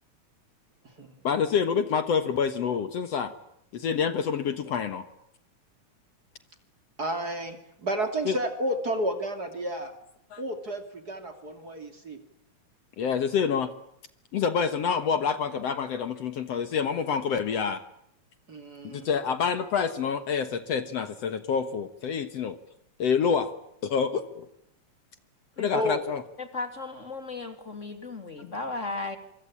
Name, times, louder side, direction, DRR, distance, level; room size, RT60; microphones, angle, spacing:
voice 1, 1.2-3.3 3.7-5.1 8.3-8.4 10.3-10.4 13.0-13.7 14.3-17.8 18.8-22.6 23.0-23.5 23.8-24.5 25.6-26.2 28.4-28.5, left 6 dB, 60° left, 11 dB, 2.3 m, -27 dB
voice 2, 7.0-9.9 10.4-12.2 18.5-19.1 25.7-26.0, equal, 35° right, 8 dB, 3.1 m, -31 dB
voice 3, 26.4-29.2, left 3 dB, 25° left, 8 dB, 3.0 m, -35 dB
27.0 x 24.5 x 8.7 m, 0.76 s
omnidirectional pair, 3.4 m